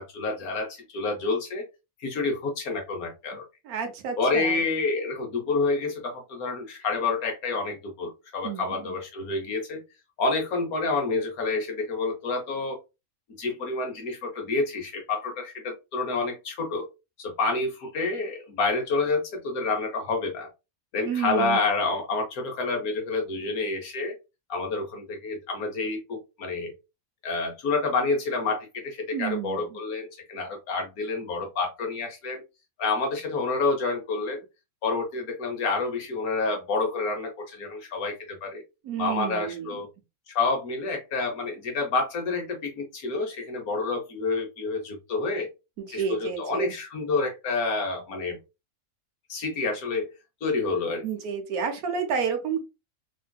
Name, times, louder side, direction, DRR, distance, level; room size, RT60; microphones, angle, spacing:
voice 1, 0.0-1.6 2.0-3.4 4.2-9.8 10.2-12.8 13.4-16.9 17.2-20.5 20.9-24.1 24.5-26.7 27.2-32.4 32.8-34.4 34.8-38.6 39.0-39.9 40.3-45.5 45.9-48.4 49.3-50.1 50.4-51.0, left 3 dB, 80° left, 3 dB, 1.5 m, -28 dB
voice 2, 3.6-4.6 8.4-8.9 21.0-21.6 29.1-29.8 38.8-39.8 45.8-46.7 51.0-52.6, right 7 dB, 85° right, 6 dB, 1.2 m, -30 dB
3.6 x 2.6 x 2.2 m, 0.26 s
omnidirectional pair, 1.5 m